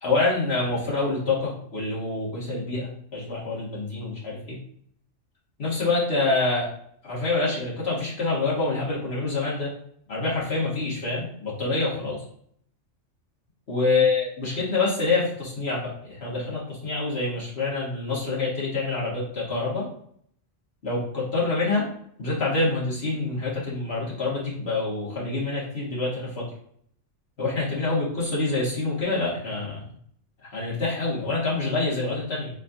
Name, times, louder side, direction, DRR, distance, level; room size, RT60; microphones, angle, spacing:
voice 1, 0.0-4.6 5.6-6.7 7.0-9.7 10.1-12.2 13.7-19.9 20.8-21.9 22.2-26.5 27.4-29.8 30.5-32.5, left 3 dB, 60° left, -6 dB, 2.1 m, -26 dB
4.3 x 4.2 x 2.6 m, 0.65 s
omnidirectional pair, 1.2 m